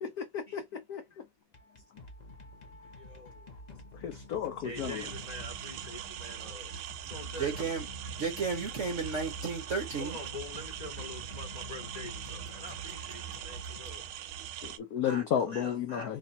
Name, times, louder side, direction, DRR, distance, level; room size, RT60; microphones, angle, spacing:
voice 1, 0.0-1.0 4.0-5.0 14.6-16.2, left 8 dB, 75° left, 0.8 m, -33 dB
sound 1, 1.4-14.6, left 3 dB, 50° left, 0.4 m, -50 dB
voice 2, 2.9-3.5 4.6-6.8 7.0-7.7 10.0-14.1 15.0-16.2, left 1 dB, 30° left, 0.8 m, -45 dB
sound 2, 4.8-14.8, right 9 dB, 85° right, 1.4 m, -41 dB
voice 3, 7.4-7.9 8.2-10.2, right 4 dB, 55° right, 0.9 m, -33 dB
3.2 x 3.0 x 4.0 m
omnidirectional pair, 2.3 m